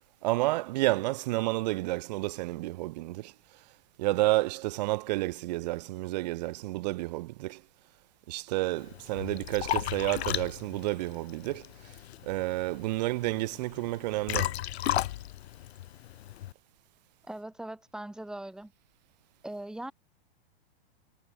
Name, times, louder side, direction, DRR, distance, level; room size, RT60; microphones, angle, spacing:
voice 1, 0.2-3.3 4.0-7.6 8.3-11.7 12.2-14.6, right 19 dB, 45° right, 0.4 m, -30 dB
Liquid, 8.8-16.5, left 14 dB, 80° left, 0.6 m, -35 dB
voice 2, 17.2-18.7 19.4-19.9, right 1 dB, ahead, 1.4 m, -40 dB
hypercardioid pair, 150°, 32 cm